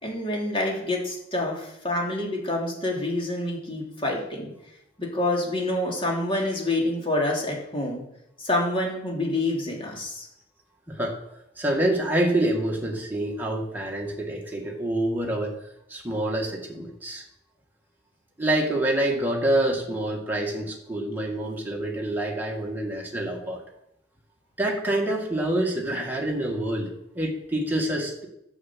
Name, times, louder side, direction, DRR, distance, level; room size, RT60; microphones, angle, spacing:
voice 1, 0.0-4.5 5.0-8.0 8.4-10.2, left 1 dB, 30° left, -2 dB, 3.3 m, -27 dB
voice 2, 11.6-15.5 15.9-17.2 18.4-23.6 24.6-28.3, right 1 dB, 10° right, -1 dB, 2.1 m, -26 dB
11.0 x 7.3 x 7.6 m, 0.82 s
head